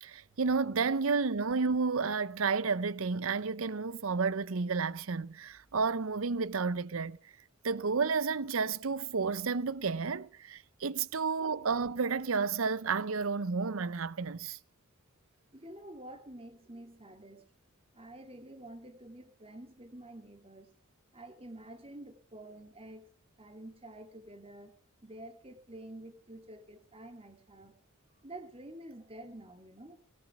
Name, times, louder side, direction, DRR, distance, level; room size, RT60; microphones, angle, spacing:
voice 1, 0.0-7.2 7.6-14.6, right 4 dB, 75° right, 0.7 m, -31 dB
voice 2, 15.5-17.4 17.9-20.7 21.1-23.1 23.4-24.7 25.0-27.7 28.2-30.0, right 1 dB, 25° right, 2.5 m, -49 dB
19.0 x 13.0 x 5.9 m
head